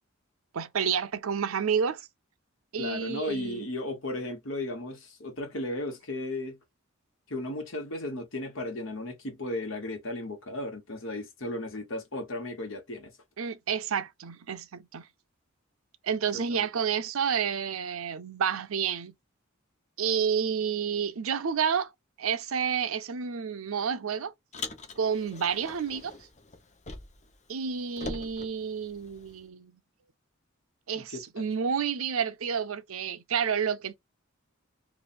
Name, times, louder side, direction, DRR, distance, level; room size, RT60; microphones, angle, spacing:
voice 1, 0.5-2.1 2.7-3.7 13.4-15.0 16.0-19.1 20.0-21.9 22.2-24.3 25.0-26.1 27.5-29.7 30.9-34.0, right 7 dB, 85° right, 0.6 m, -30 dB
voice 2, 2.8-6.6 7.3-13.1 16.3-16.7 30.9-31.5, left 1 dB, 65° left, 1.4 m, -35 dB
Car, 24.5-27.3 27.6-29.4, left 3 dB, 35° left, 0.7 m, -42 dB
3.1 x 2.5 x 4.2 m
head